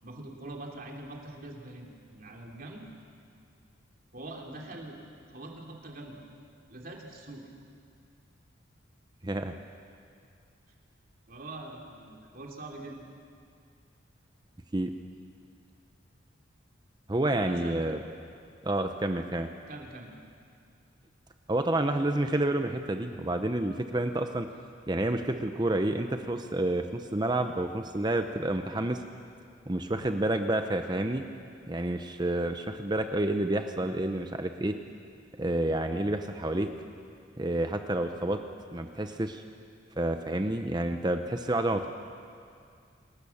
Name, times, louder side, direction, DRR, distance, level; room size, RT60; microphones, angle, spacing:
voice 1, 0.0-2.8 4.1-5.0 5.3-6.2 6.7-7.5 11.3-13.1 17.3-17.9 19.7-20.1, right 2 dB, 45° right, 0 dB, 3.2 m, -43 dB
voice 2, 17.1-18.0 18.6-19.5 21.5-24.5 24.9-29.0 29.7-31.2 31.7-34.7 35.4-36.7 37.4-38.4 38.7-39.4 40.0-41.9, right 1 dB, 20° right, 7 dB, 0.8 m, -29 dB
27.0 x 19.0 x 7.2 m, 2.3 s
head